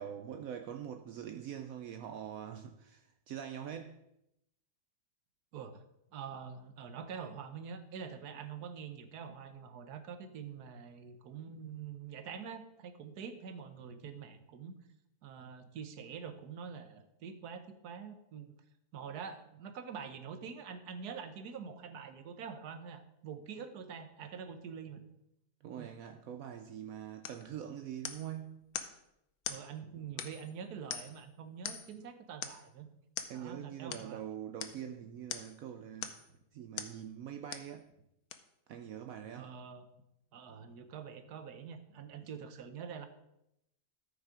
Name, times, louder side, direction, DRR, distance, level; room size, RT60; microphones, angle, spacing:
voice 1, 0.0-4.0 25.6-28.7 33.3-36.1 36.5-37.9 38.7-39.5, right 9 dB, 70° right, 1.0 m, -44 dB
voice 2, 6.1-14.7 15.2-18.5 18.9-25.0 25.8-25.9 29.5-32.9 33.3-34.2 39.3-39.9 40.3-43.1, right 6 dB, 90° right, 1.4 m, -45 dB
sound 1, 27.2-27.5 28.0-28.3 28.7-29.0 29.4-29.7 30.2-30.5 30.9-31.2 31.6-32.0 32.4-32.7 33.2-33.4 33.9-34.1 34.6-34.8 35.3-35.6 36.0-36.3 36.8-37.0 37.5-37.7 38.3-38.4, left 8 dB, 75° left, 1.2 m, -41 dB
13.5 x 5.6 x 4.9 m
omnidirectional pair, 1.6 m